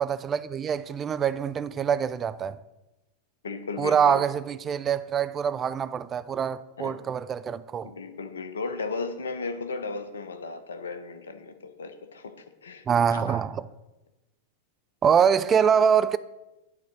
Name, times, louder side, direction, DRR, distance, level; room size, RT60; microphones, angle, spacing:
voice 1, 0.0-2.6 3.8-7.9 12.9-13.7 15.0-16.2, right 7 dB, 25° right, 0.3 m, -24 dB
voice 2, 3.4-4.2 6.8-7.0 7.8-12.4 12.6-13.4, left 4 dB, 70° left, 0.7 m, -35 dB
9.2 x 4.0 x 6.3 m
figure-of-eight pair, 90°, 0 cm